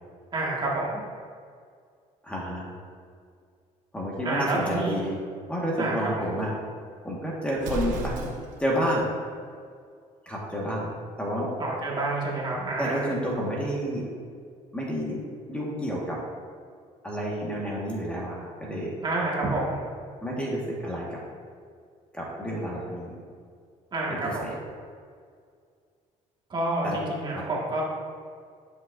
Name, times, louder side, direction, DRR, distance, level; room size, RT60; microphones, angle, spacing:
voice 1, 0.3-1.0 4.2-5.0 5.8-6.2 11.6-13.1 19.0-19.8 23.9-24.5 26.5-27.8, right 2 dB, 35° right, -4 dB, 1.8 m, -28 dB
voice 2, 2.2-2.7 3.9-5.2 5.5-6.5 7.0-8.3 8.6-9.1 10.2-10.9 11.2-11.5 12.8-14.1 14.7-15.2 15.5-16.2 17.0-18.9 20.2-21.2 22.1-23.1 24.1-24.5 26.8-27.0 27.3-27.4, equal, 10° left, -5 dB, 1.6 m, -30 dB
Explosion, 7.5-8.7, right 3 dB, 80° right, 1.0 m, -33 dB
10.5 x 6.3 x 2.6 m, 2.1 s
cardioid pair, 125°, 13 cm